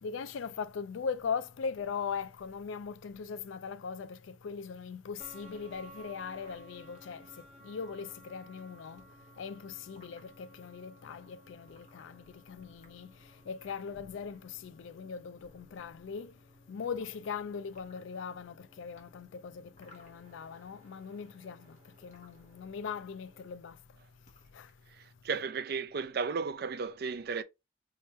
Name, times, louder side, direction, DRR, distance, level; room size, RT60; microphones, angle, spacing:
voice 1, 0.0-7.3 7.6-9.0 9.4-13.1 13.5-16.3 16.7-21.8 22.0-23.8 24.5-24.7, left 6 dB, 70° left, 0.4 m, -40 dB
sound 1, 5.2-23.5, right 1 dB, 35° right, 1.7 m, -58 dB
sound 2, 6.4-7.1 7.7-8.6 8.8-10.3 11.0-11.2 11.7-12.4 12.7-14.0 14.8-15.4 15.8-15.9 16.8-17.4 17.7-18.2 19.0-20.6 20.9-22.4 23.0-23.2 23.5-23.8 24.1-24.8, left 2 dB, 35° left, 1.2 m, -60 dB
voice 2, 25.0-27.4, right 5 dB, 55° right, 0.4 m, -34 dB
4.4 x 3.0 x 3.0 m
head